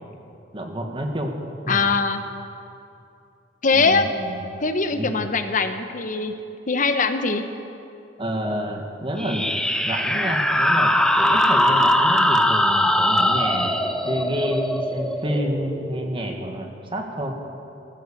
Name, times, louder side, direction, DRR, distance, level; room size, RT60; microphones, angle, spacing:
voice 1, 0.5-1.3 1.6-1.8 3.7-4.5 4.9-5.3 8.2-9.5 9.8-17.4, equal, 30° right, 3 dB, 1.6 m, -29 dB
voice 2, 1.7-2.2 3.6-4.3 4.6-6.3 6.7-7.4, left 4 dB, 45° left, 8 dB, 1.0 m, -22 dB
sound 1, 9.2-16.4, left 1 dB, 5° left, 0.6 m, -21 dB
14.5 x 13.5 x 7.2 m, 2.7 s
head